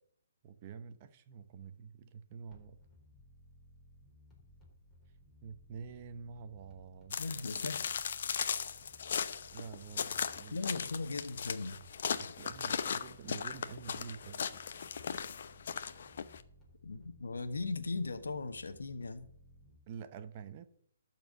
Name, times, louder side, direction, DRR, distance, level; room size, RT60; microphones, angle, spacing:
voice 1, 0.4-2.8 5.4-7.2 9.5-10.6 12.2-14.4 19.9-20.7, right 6 dB, 35° right, 10 dB, 0.9 m, -48 dB
sound 1, 2.5-19.8, left 1 dB, 10° left, 4.1 m, -60 dB
sound 2, 7.1-16.4, left 7 dB, 60° left, 0.8 m, -37 dB
voice 2, 7.2-7.8 10.5-11.8 16.8-19.3, left 3 dB, 80° left, 9 dB, 1.3 m, -38 dB
12.5 x 4.6 x 7.7 m, 0.66 s
hypercardioid pair, 140°, 0 cm